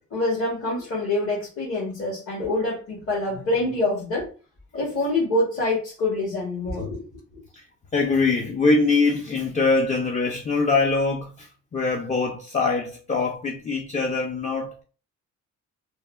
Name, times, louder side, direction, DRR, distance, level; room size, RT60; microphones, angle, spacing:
voice 1, 0.1-4.3 4.7-7.1, left 2 dB, 45° left, 1.2 m, -25 dB
voice 2, 7.9-14.8, left 3 dB, 25° left, 0.4 m, -23 dB
3.3 x 2.1 x 2.4 m
cardioid pair, 90°, 30 cm